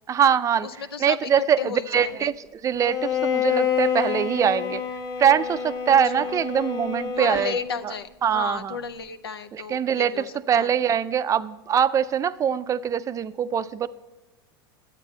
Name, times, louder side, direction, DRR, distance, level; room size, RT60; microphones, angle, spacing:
voice 1, 0.1-0.7 1.0-4.8 5.2-7.5 8.2-8.8 9.5-13.9, right 8 dB, 25° right, 14 dB, 0.4 m, -23 dB
voice 2, 0.6-1.3 1.6-2.3 6.2-6.3 7.2-10.7, left 7 dB, 90° left, 10 dB, 0.6 m, -33 dB
Bowed string instrument, 2.8-7.9, left 7 dB, 30° left, 1.2 m, -28 dB
10.0 x 8.9 x 4.0 m, 1.1 s
hypercardioid pair, 100°, 12 cm